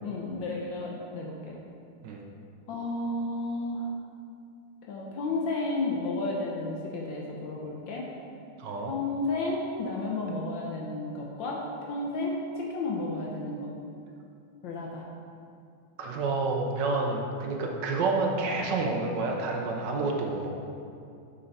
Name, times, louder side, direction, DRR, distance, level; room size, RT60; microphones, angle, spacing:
voice 1, 0.0-1.6 2.7-3.9 4.9-8.1 8.9-13.7 14.6-15.1, left 2 dB, 75° left, -2 dB, 1.5 m, -32 dB
voice 2, 8.6-8.9 16.0-20.5, right 3 dB, 70° right, 1 dB, 1.4 m, -29 dB
8.1 x 6.9 x 4.1 m, 2.5 s
omnidirectional pair, 2.2 m